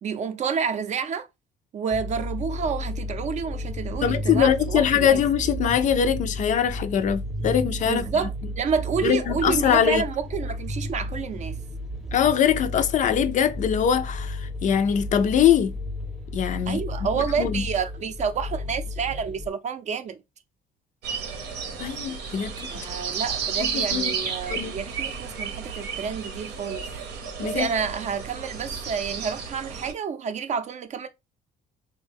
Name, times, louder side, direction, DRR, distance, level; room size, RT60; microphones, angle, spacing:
voice 1, 0.0-1.3 1.7-5.2 7.8-11.6 16.7-20.2 22.7-26.9 27.4-31.1, right 6 dB, 45° right, 0.5 m, -29 dB
sound 1, 1.9-19.5, left 1 dB, ahead, 0.6 m, -33 dB
voice 2, 4.0-8.0 9.0-10.0 12.1-15.8 16.3-16.8 17.1-17.6 21.8-22.5 23.6-24.2 24.5-24.8 27.4-27.7, left 9 dB, 50° left, 0.4 m, -22 dB
sound 2, 21.0-29.9, right 6 dB, 85° right, 0.8 m, -32 dB
3.5 x 2.1 x 3.3 m
cardioid pair, 110°, 17 cm